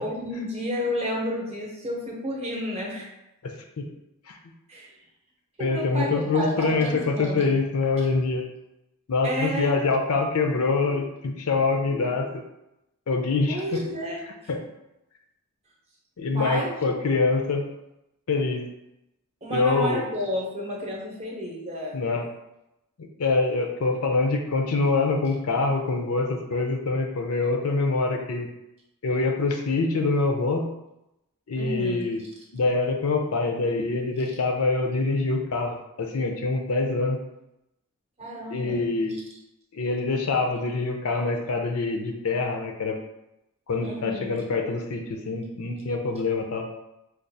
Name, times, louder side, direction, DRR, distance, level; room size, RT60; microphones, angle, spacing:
voice 1, 0.0-3.1 4.7-4.9 5.6-7.5 9.2-9.8 13.5-14.2 16.3-16.7 19.4-22.0 31.5-32.3 38.2-38.8 43.8-44.4, equal, 30° right, -2 dB, 0.7 m, -31 dB
voice 2, 3.4-3.9 4.3-4.4 5.6-8.5 9.1-12.4 13.1-13.8 14.5-14.6 16.2-17.6 18.3-18.6 19.5-20.0 21.9-22.3 23.0-28.5 29.0-30.7 31.5-32.2 32.5-37.2 38.5-39.2 39.7-43.0 43.7-46.7, left 3 dB, 80° left, 3 dB, 0.5 m, -25 dB
4.5 x 2.3 x 2.6 m, 0.89 s
head